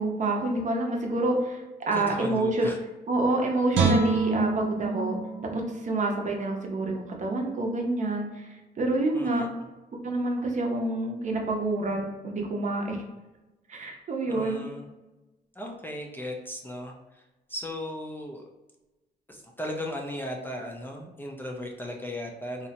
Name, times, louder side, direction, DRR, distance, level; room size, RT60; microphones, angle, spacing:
voice 1, 0.0-2.7 3.1-5.2 5.4-9.4 9.9-13.0 13.7-14.6, right 2 dB, 45° right, 1 dB, 0.6 m, -28 dB
voice 2, 1.9-2.8 9.1-9.5 14.3-14.9 15.6-16.9 17.5-18.4 19.3-22.7, left 1 dB, 10° left, 0 dB, 0.4 m, -36 dB
Guitar, 3.7-6.9 7.3-7.5, right 4 dB, 85° right, 0.4 m, -28 dB
2.7 x 2.0 x 2.8 m, 1.1 s
cardioid pair, 85°, 18 cm